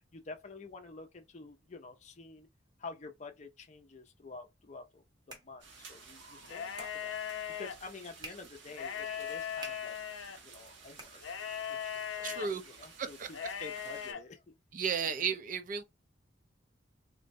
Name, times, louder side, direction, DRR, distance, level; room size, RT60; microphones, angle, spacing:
voice 1, 0.1-2.5 2.8-10.0 10.4-11.3 11.7-14.5, left 4 dB, 35° left, 0.5 m, -49 dB
sound 1, 4.7-11.8, right 2 dB, 20° right, 0.8 m, -55 dB
sound 2, 5.6-14.1, right 4 dB, 75° right, 0.9 m, -54 dB
sound 3, 6.4-7.7 8.7-10.4 11.2-12.5 13.3-14.2, left 8 dB, 85° left, 0.5 m, -39 dB
voice 2, 12.2-12.6 13.0-13.3 14.7-15.8, right 6 dB, 45° right, 0.4 m, -33 dB
3.7 x 2.1 x 2.6 m
head